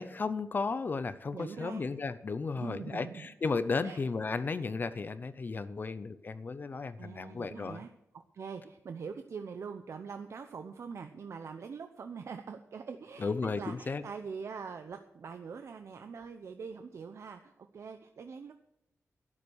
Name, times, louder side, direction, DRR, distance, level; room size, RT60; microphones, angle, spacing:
voice 1, 0.0-7.8 13.2-14.0, left 4 dB, 40° left, 13 dB, 0.6 m, -34 dB
voice 2, 1.3-1.9 2.5-3.3 3.8-4.0 7.0-18.5, right 5 dB, 65° right, 7 dB, 0.8 m, -43 dB
12.0 x 9.8 x 6.3 m, 0.86 s
wide cardioid pair, 160°, 5 cm